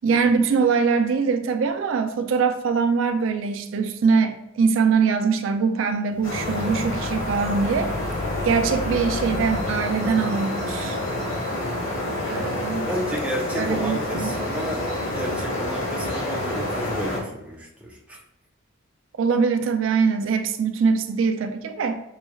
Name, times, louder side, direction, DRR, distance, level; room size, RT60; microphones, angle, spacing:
voice 1, 0.0-7.9 8.4-11.0 12.3-12.9 13.6-14.3 19.2-22.0, right 5 dB, 70° right, 7 dB, 0.3 m, -22 dB
sound 1, 6.1-9.8, left 2 dB, 40° left, 0.5 m, -34 dB
sound 2, 6.2-17.2, left 1 dB, 75° left, 1.2 m, -28 dB
voice 2, 12.8-14.8 15.1-18.2, equal, 5° right, -2 dB, 0.5 m, -31 dB
5.4 x 3.1 x 2.2 m, 0.85 s
head